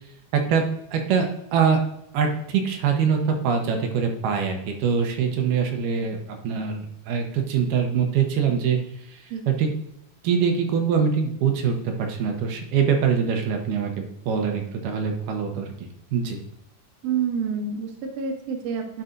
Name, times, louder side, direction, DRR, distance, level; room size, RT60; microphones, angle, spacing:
voice 1, 0.3-0.6 0.9-1.8 2.1-8.8 9.1-9.7 10.2-16.4, right 6 dB, 80° right, 3 dB, 2.3 m, -24 dB
voice 2, 17.0-19.0, right 6 dB, 65° right, 3 dB, 1.7 m, -28 dB
9.9 x 3.9 x 2.6 m, 0.79 s
omnidirectional pair, 3.7 m